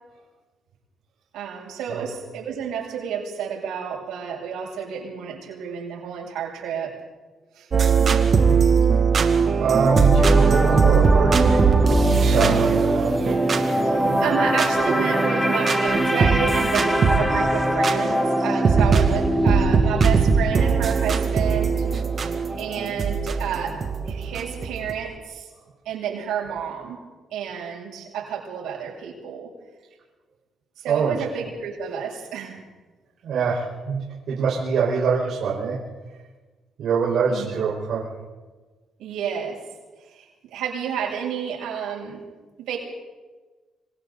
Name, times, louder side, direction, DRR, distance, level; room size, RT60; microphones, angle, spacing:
voice 1, 1.3-6.9 7.5-7.7 13.8-21.9 22.6-25.5 25.8-27.0 27.3-29.5 30.8-32.6 37.3-37.5 39.0-39.6 40.1-42.2 42.6-42.8, right 7 dB, 90° right, -2 dB, 7.9 m, -30 dB
sound 1, 7.7-24.9, right 5 dB, 45° right, 2.4 m, -21 dB
voice 2, 9.6-13.2 30.9-31.2 33.2-35.8 36.8-38.1, right 5 dB, 70° right, -5 dB, 5.3 m, -24 dB
sound 2, 9.9-24.0 24.3-24.5, equal, 5° left, 2.9 m, -25 dB
26.5 x 26.5 x 4.2 m, 1.3 s
cardioid pair, 90°, 0 cm